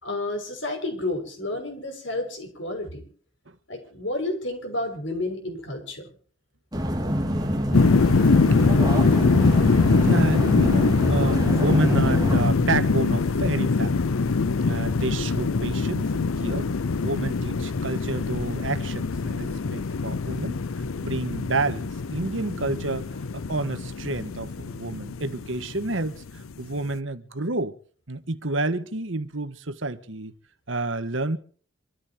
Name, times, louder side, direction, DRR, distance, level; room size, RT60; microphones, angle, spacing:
voice 1, 0.0-3.0 3.7-6.1, left 2 dB, 65° left, 6.2 m, -31 dB
sound 1, 6.7-12.5, equal, 20° right, 2.5 m, -26 dB
voice 2, 7.0-7.9 8.5-14.1 14.6-16.7 17.0-27.8 28.1-30.3 30.7-31.4, right 2 dB, 70° right, 1.6 m, -30 dB
sound 2, 7.7-26.6, left 4 dB, 90° left, 0.6 m, -23 dB
26.5 x 14.0 x 2.9 m
head